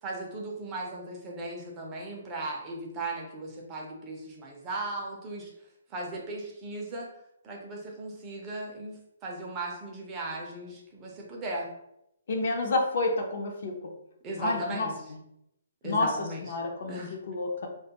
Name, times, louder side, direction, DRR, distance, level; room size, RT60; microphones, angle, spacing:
voice 1, 0.0-5.5 5.9-7.1 7.4-11.7 14.2-15.0 15.8-16.5 16.9-17.2, right 2 dB, 20° right, -1 dB, 0.4 m, -37 dB
voice 2, 12.3-13.7 14.4-14.9 15.8-16.1 16.4-17.0 17.3-17.7, left 2 dB, 55° left, 2 dB, 0.5 m, -29 dB
2.5 x 2.2 x 2.8 m, 0.80 s
hypercardioid pair, 165°, 0 cm